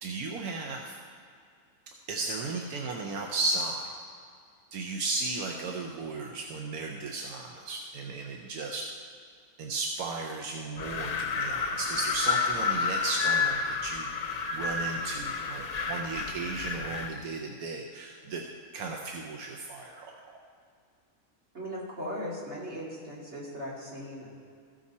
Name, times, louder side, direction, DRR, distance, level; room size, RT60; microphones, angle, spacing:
voice 1, 0.0-1.0 2.1-3.9 4.7-8.8 9.6-18.4 18.7-20.4, right 3 dB, 85° right, 1 dB, 1.2 m, -35 dB
Wind, 10.8-17.2, left 5 dB, 75° left, 0.3 m, -30 dB
voice 2, 21.5-24.3, equal, 50° right, -6 dB, 2.6 m, -38 dB
14.5 x 6.3 x 4.2 m, 2.3 s
omnidirectional pair, 1.5 m